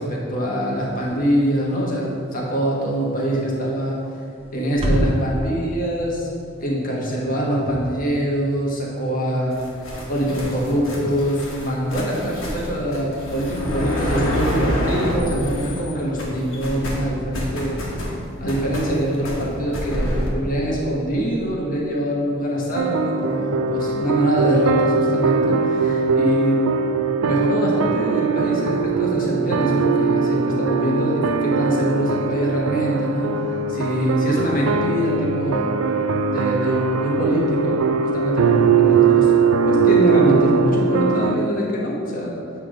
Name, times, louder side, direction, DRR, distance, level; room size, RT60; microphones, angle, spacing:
voice 1, 0.0-4.0 4.5-6.3 6.6-9.5 10.1-17.8 18.4-26.6 27.2-33.3 33.7-35.7 36.3-37.8 38.1-39.3 39.6-42.3, equal, 40° left, -3 dB, 1.3 m, -23 dB
sound 1, 0.7-9.6, equal, 25° right, 0.8 m, -32 dB
sound 2, 9.5-15.9 16.2-20.3, equal, 70° left, 1.3 m, -28 dB
sound 3, 22.7-41.4, right 5 dB, 80° right, 0.3 m, -20 dB
8.3 x 3.4 x 5.0 m, 2.5 s
head